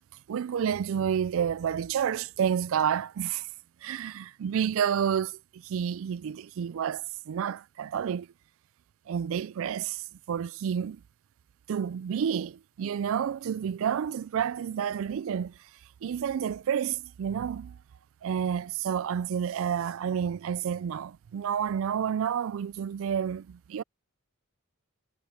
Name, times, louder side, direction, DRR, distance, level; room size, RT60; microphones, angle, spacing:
voice 1, 0.3-3.5 3.8-8.3 9.1-11.0 11.7-15.5 16.0-17.8 18.2-23.8, right 8 dB, 65° right, 0.3 m, -30 dB
head